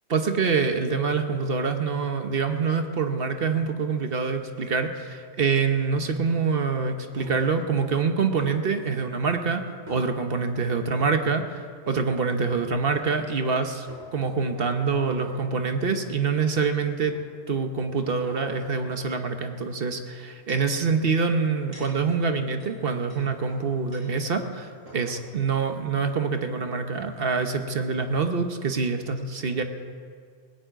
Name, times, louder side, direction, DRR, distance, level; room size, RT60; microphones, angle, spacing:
voice 1, 0.1-9.6 9.9-13.9 14.1-17.2 17.5-29.6, right 5 dB, 50° right, 7 dB, 1.1 m, -25 dB
sound 1, 7.2-7.6 8.4-8.5 9.9-10.5 10.9-11.1 12.4-12.5 12.9-13.0 13.9-15.5 16.2-16.4 17.0-17.2 17.7-18.9 20.0-20.8 21.4-24.3 24.6-24.7 24.9-25.2, equal, 75° right, 4.7 m, -46 dB
19.0 x 7.1 x 9.0 m, 2.1 s
omnidirectional pair, 1.3 m